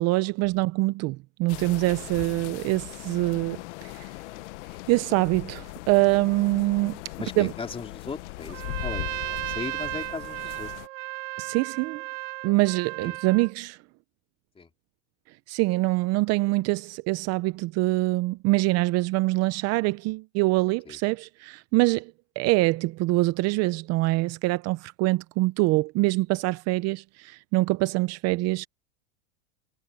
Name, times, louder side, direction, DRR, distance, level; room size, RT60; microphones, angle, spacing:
voice 1, 0.0-4.1 4.9-7.0 7.4-7.5 11.4-12.0 12.4-13.8 15.5-22.1 22.4-28.7, right 21 dB, 45° right, 0.7 m, -24 dB
sound 1, 1.5-10.9, left 21 dB, 70° left, 1.0 m, -39 dB
voice 2, 7.2-10.7 13.0-13.1 14.6-14.7 20.9-21.0, left 4 dB, 15° left, 3.2 m, -38 dB
Trumpet, 8.5-13.5, right 21 dB, 70° right, 1.9 m, -35 dB
supercardioid pair, 125°, 37 cm